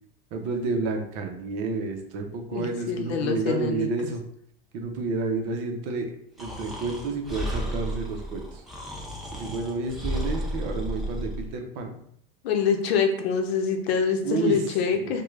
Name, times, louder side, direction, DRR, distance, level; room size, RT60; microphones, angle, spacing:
voice 1, 0.3-4.2 4.7-8.6 9.3-12.0 14.2-14.7 15.0-15.2, right 3 dB, 50° right, 4 dB, 0.7 m, -30 dB
voice 2, 2.5-3.9 12.4-15.2, left 6 dB, 85° left, 3 dB, 0.7 m, -25 dB
Breathing, 6.4-11.5, right 1 dB, ahead, 0.3 m, -33 dB
3.6 x 2.2 x 3.2 m, 0.69 s
supercardioid pair, 150°, 30 cm